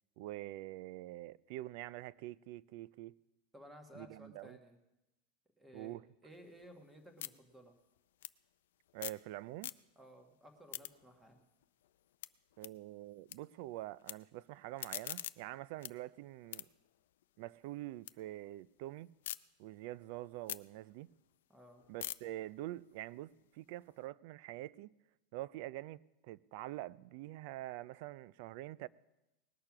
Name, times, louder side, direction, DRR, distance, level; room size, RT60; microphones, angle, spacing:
voice 1, 0.2-3.1 3.9-4.6 5.7-6.0 8.9-9.7 12.6-16.7 17.4-19.2 19.6-21.1 21.9-24.9 25.3-28.9, right 16 dB, 45° right, 0.3 m, -46 dB
voice 2, 3.5-4.8 5.6-7.8 9.9-11.4 21.5-21.9, equal, 5° right, 1.3 m, -57 dB
sound 1, 6.3-9.3 9.5-10.2 10.5-13.4 13.7-14.1 14.6-18.2 18.5-19.4 19.8-24.0, left 13 dB, 80° left, 0.4 m, -48 dB
19.5 x 6.7 x 5.9 m
supercardioid pair, 170°, 0 cm